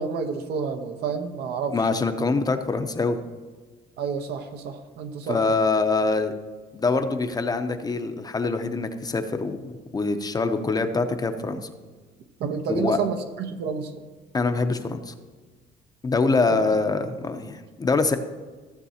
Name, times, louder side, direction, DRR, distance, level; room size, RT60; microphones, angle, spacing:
voice 1, 0.0-1.8 4.0-5.4 12.4-13.9 16.5-16.7, right 6 dB, 75° right, 7 dB, 1.0 m, -29 dB
voice 2, 1.7-3.2 5.3-6.3 6.7-11.7 12.7-13.0 14.3-15.1 16.0-18.2, left 3 dB, 25° left, 8 dB, 0.7 m, -24 dB
15.5 x 7.4 x 2.8 m, 1.4 s
cardioid pair, 110°, 17 cm